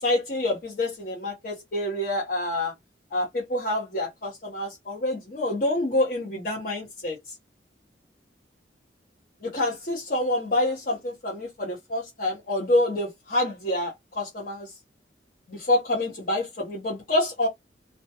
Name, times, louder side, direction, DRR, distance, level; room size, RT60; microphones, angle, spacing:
voice 1, 0.0-2.7 3.1-7.2 9.4-14.7 15.5-17.5, left 1 dB, 50° left, 0.7 m, -27 dB
2.2 x 2.1 x 2.7 m
head